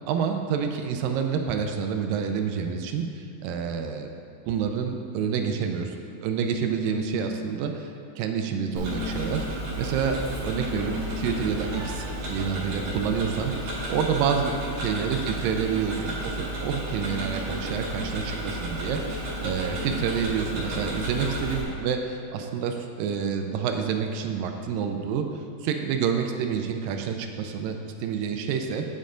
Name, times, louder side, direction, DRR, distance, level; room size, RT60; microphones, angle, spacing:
voice 1, 0.1-4.1 4.5-9.5 9.8-14.5 14.8-28.9, right 7 dB, 80° right, 5 dB, 2.1 m, -28 dB
sound 1, 6.5-7.5 8.5-9.5 10.5-11.5 13.0-14.1 15.0-16.1 17.0-18.1 19.0-20.1, left 4 dB, 90° left, 1.7 m, -38 dB
Tick-tock, 8.8-21.6, right 1 dB, 50° right, 2.3 m, -33 dB
8.4 x 7.4 x 3.8 m, 2.5 s
omnidirectional pair, 4.3 m